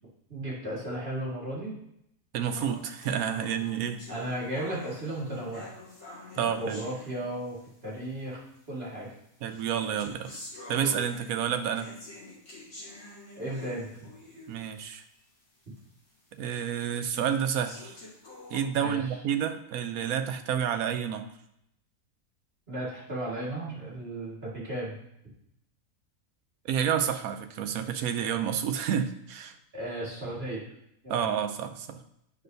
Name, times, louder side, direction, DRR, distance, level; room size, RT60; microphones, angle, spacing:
voice 1, 0.3-1.8 4.1-5.7 6.3-7.6 7.8-8.4 8.7-9.1 13.4-14.1 18.7-19.1 22.7-25.0 29.7-30.6 31.0-31.3, right 1 dB, 40° right, -5 dB, 2.0 m, -35 dB
voice 2, 2.3-4.0 6.4-6.9 9.4-10.3 10.7-11.9 14.5-15.0 16.4-18.0 18.5-21.3 26.6-29.6 31.1-32.0, right 8 dB, 80° right, 8 dB, 1.0 m, -29 dB
sound 1, 2.6-7.7 8.6-8.7 9.4-14.7 15.1-15.2 15.8-15.9 16.5-16.6 17.4-18.6, left 2 dB, 70° left, 2.4 m, -47 dB
8.3 x 5.4 x 2.7 m, 0.77 s
omnidirectional pair, 1.5 m